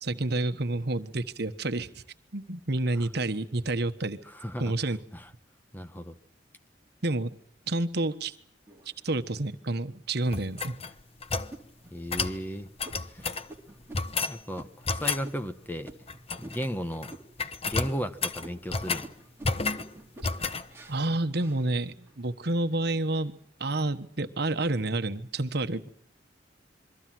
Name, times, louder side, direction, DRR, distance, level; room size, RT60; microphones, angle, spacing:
voice 1, 0.0-2.0 2.3-4.2 4.6-5.0 7.0-7.4 7.7-8.3 9.0-10.8 20.9-23.3 23.6-25.9, right 2 dB, 60° right, 1.3 m, -29 dB
voice 2, 4.3-4.7 5.1-5.3 5.7-6.2 11.9-12.7 13.1-13.3 14.3-15.9 16.4-17.2 17.7-19.1, equal, 10° left, 1.2 m, -35 dB
sound 1, 8.7-9.5 10.1-10.2 10.7-11.0 11.5-16.8 17.1-17.6 17.9-22.2 22.7-23.2, right 2 dB, 15° right, 3.1 m, -50 dB
sound 2, 10.3-11.5 12.1-12.4 12.8-13.5 13.9-14.4 14.8-15.3 16.1-16.7 16.9-17.1 17.4-19.1 19.4-19.9 20.2-20.6, left 4 dB, 35° left, 1.0 m, -31 dB
27.5 x 23.5 x 6.1 m
head